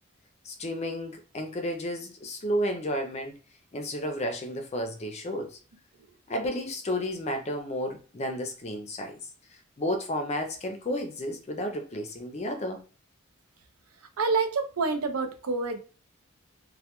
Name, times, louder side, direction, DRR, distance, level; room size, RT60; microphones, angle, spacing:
voice 1, 0.4-3.4 3.7-5.6 6.3-9.2 9.5-12.8, equal, 30° left, 5 dB, 0.4 m, -32 dB
voice 2, 14.2-15.8, right 4 dB, 90° right, 6 dB, 0.5 m, -27 dB
2.2 x 2.1 x 2.9 m, 0.37 s
head